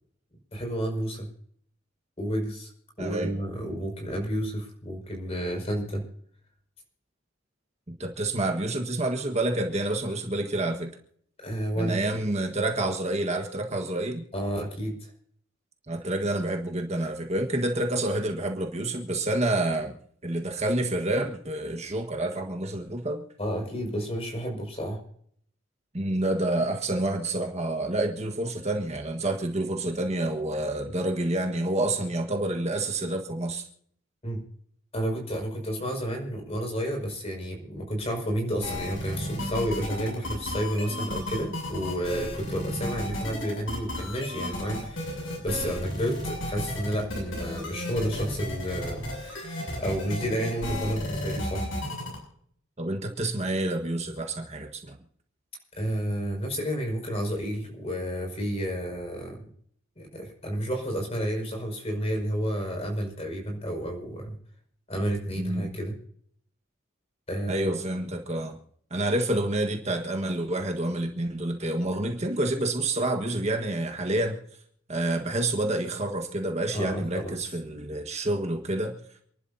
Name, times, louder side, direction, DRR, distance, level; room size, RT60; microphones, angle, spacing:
voice 1, 0.5-1.3 2.2-2.7 3.0-6.0 11.4-12.0 14.3-15.1 23.4-25.0 34.2-34.4 34.9-51.7 55.8-59.5 60.0-64.3 64.9-65.9 67.3-67.7 76.7-77.5, equal, 30° left, 1 dB, 5.8 m, -31 dB
voice 2, 3.0-3.3 8.0-10.9 11.8-14.2 15.9-20.0 20.2-23.2 25.9-33.7 52.8-55.0 65.4-65.7 67.5-68.6 68.9-74.4 74.9-79.0, right 1 dB, 35° right, 3 dB, 1.5 m, -28 dB
sound 1, 38.6-52.2, left 1 dB, 75° left, 7.6 m, -33 dB
28.0 x 11.5 x 2.8 m, 0.63 s
head